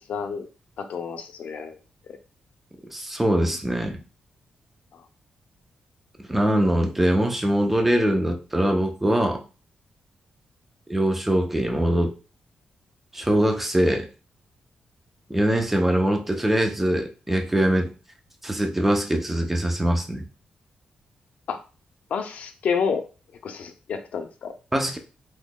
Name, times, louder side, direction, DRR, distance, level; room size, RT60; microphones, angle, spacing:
voice 1, 0.1-0.5 0.8-1.8 4.9-5.0 21.5-21.6 22.1-23.1 23.4-24.5, left 6 dB, 65° left, 7 dB, 0.5 m, -29 dB
voice 2, 2.9-4.0 6.3-9.4 10.9-12.1 13.1-14.1 15.3-17.9 18.4-20.3 24.7-25.0, right 1 dB, 10° right, 4 dB, 0.5 m, -22 dB
3.7 x 3.0 x 2.2 m, 0.34 s
wide cardioid pair, 140°, 3 cm